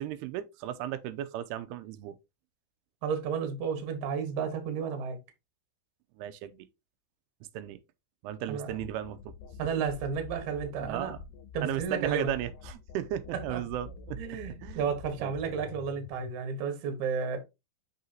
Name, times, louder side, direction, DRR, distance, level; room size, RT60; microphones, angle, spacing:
voice 1, 0.0-2.2 6.2-6.7 7.5-7.8 8.2-9.3 10.8-11.2 11.6-14.2 14.6-14.8 15.2-15.3, right 12 dB, 90° right, 2.7 m, -35 dB
voice 2, 3.0-5.2 8.5-8.8 9.6-11.1 11.5-12.3 13.5-13.6 14.2-17.4, right 6 dB, 60° right, 2.3 m, -32 dB
sound 1, 8.7-16.3, left 4 dB, 80° left, 1.9 m, -46 dB
6.6 x 5.7 x 2.8 m
omnidirectional pair, 4.6 m